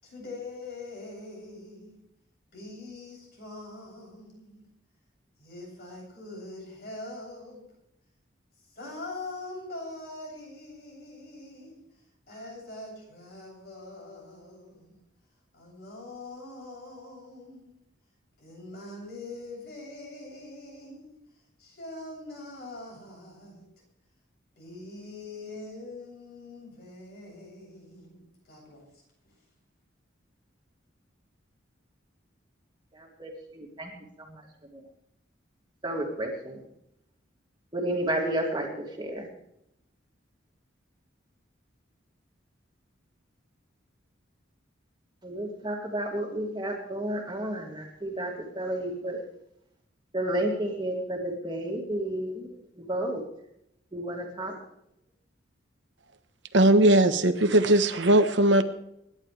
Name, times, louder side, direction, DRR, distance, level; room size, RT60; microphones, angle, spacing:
voice 1, 0.0-2.0 2.5-4.7 5.4-7.7 8.7-11.8 12.3-15.1 15.5-17.8 18.4-21.2 21.6-23.7 24.6-28.8, left 2 dB, 50° left, -2 dB, 7.8 m, -43 dB
voice 2, 32.9-33.9 34.3-34.4 34.7-34.8 35.8-36.6 37.7-39.3 45.2-49.2 50.1-52.5 52.8-53.2 53.9-54.6, right 1 dB, 25° right, 0 dB, 2.7 m, -31 dB
voice 3, 56.5-58.6, right 1 dB, 65° right, 8 dB, 1.2 m, -19 dB
25.5 x 11.5 x 3.4 m, 0.79 s
head